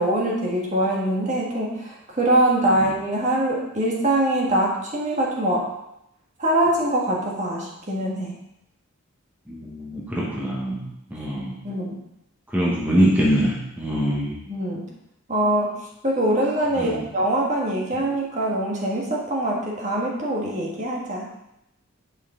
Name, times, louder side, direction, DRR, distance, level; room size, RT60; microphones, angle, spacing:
voice 1, 0.0-5.6 6.4-8.3 11.6-12.0 14.5-14.9 15.3-15.8 16.0-21.3, right 1 dB, 35° right, -2 dB, 1.4 m, -23 dB
voice 2, 9.5-10.8 11.1-11.6 12.5-14.3 16.8-17.0, equal, 10° right, -5 dB, 1.2 m, -23 dB
8.8 x 5.4 x 3.8 m, 0.84 s
head